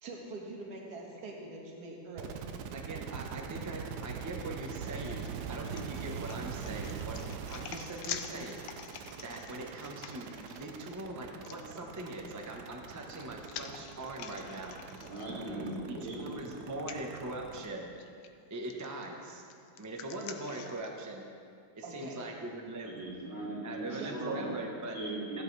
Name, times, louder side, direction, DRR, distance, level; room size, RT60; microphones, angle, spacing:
voice 1, 0.0-2.4 15.3-15.8 21.8-22.2 23.9-24.1, right 2 dB, 50° right, -2 dB, 2.1 m, -44 dB
sound 1, 2.2-17.7, right 7 dB, 65° right, 1.0 m, -43 dB
voice 2, 2.7-7.2 7.5-8.7 9.2-14.8 15.9-17.9 18.5-19.4 19.8-21.2 21.7-22.9 23.6-25.0 25.3-25.4, right 2 dB, 15° right, 0 dB, 0.6 m, -41 dB
sound 2, 5.1-10.6 11.4-11.6 12.7-15.8 16.1-16.2 16.8-17.0 18.0-18.3 18.7-20.9, left 9 dB, 80° left, 1.4 m, -46 dB
voice 3, 15.0-16.7 22.8-24.6 24.9-25.4, right 2 dB, 85° right, -7 dB, 4.0 m, -39 dB
16.0 x 11.5 x 3.4 m, 2.3 s
omnidirectional pair, 2.2 m